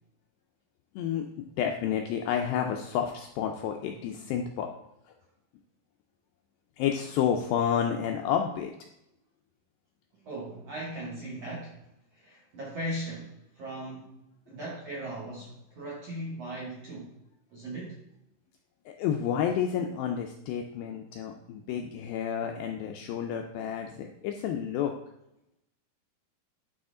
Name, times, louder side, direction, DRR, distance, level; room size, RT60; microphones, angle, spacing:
voice 1, 1.0-4.7 6.8-8.7 18.9-24.9, left 8 dB, 85° left, 3 dB, 2.1 m, -30 dB
voice 2, 10.1-11.8 12.1-14.1 14.5-17.1 17.5-18.0, right 1 dB, 65° right, -4 dB, 1.5 m, -38 dB
11.0 x 4.2 x 3.7 m, 0.84 s
omnidirectional pair, 4.7 m